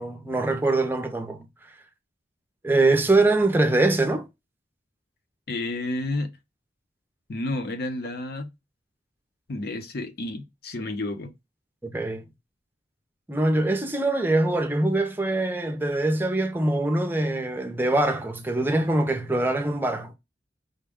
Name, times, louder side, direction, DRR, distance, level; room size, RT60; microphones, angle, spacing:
voice 1, 0.0-1.5 2.6-4.3 11.8-12.2 13.3-20.1, right 2 dB, 10° right, 0.6 m, -23 dB
voice 2, 5.5-6.3 7.3-8.5 9.5-11.3, left 2 dB, 60° left, 0.7 m, -30 dB
5.1 x 2.2 x 3.5 m
head